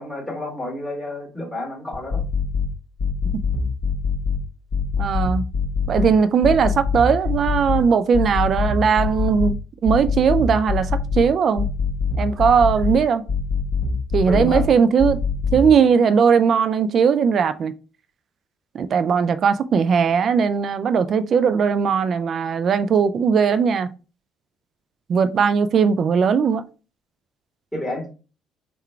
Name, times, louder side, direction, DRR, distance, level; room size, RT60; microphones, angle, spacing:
voice 1, 0.0-2.2 14.3-14.6 27.7-28.1, left 1 dB, 10° left, 1.7 m, -29 dB
sound 1, 1.9-2.7 3.0-4.4 4.7-6.1 6.4-7.8 8.1-9.5 9.8-11.2 11.6-13.0 13.3-14.7 15.0-15.7, left 5 dB, 40° left, 1.3 m, -23 dB
voice 2, 5.0-5.5 5.9-9.6 9.8-11.7 12.2-13.2 14.1-15.2 15.5-17.7 18.7-23.9 25.1-26.6, right 6 dB, 50° right, 0.3 m, -18 dB
3.7 x 2.3 x 4.3 m
supercardioid pair, 80°, 0 cm